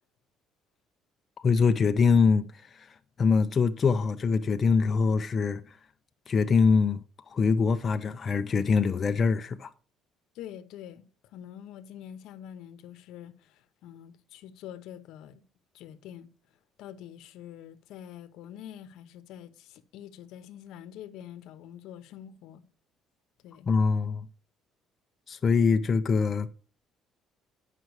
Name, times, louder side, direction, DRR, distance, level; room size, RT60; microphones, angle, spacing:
voice 1, 1.4-5.8 6.3-9.7 23.7-24.3 25.3-26.5, left 5 dB, 30° left, 0.4 m, -24 dB
voice 2, 10.3-11.1 11.3-15.4 15.7-16.3 16.8-22.6 23.4-23.8, left 10 dB, 75° left, 0.8 m, -45 dB
9.4 x 5.8 x 4.7 m
cardioid pair, 140°, 0 cm